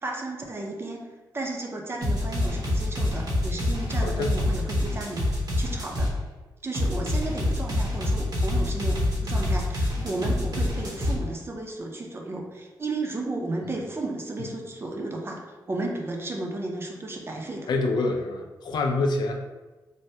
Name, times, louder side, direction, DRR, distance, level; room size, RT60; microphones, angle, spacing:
voice 1, 0.0-1.0 1.3-5.2 5.6-6.2 6.6-17.7, right 2 dB, 30° right, 1 dB, 0.5 m, -33 dB
sound 1, 2.0-6.1 6.7-11.2, left 1 dB, 60° right, 0.9 m, -26 dB
voice 2, 3.9-4.4 14.4-14.5 17.7-19.3, left 2 dB, 70° left, 2 dB, 0.4 m, -26 dB
3.3 x 2.1 x 2.7 m, 1.2 s
cardioid pair, 80°, 8 cm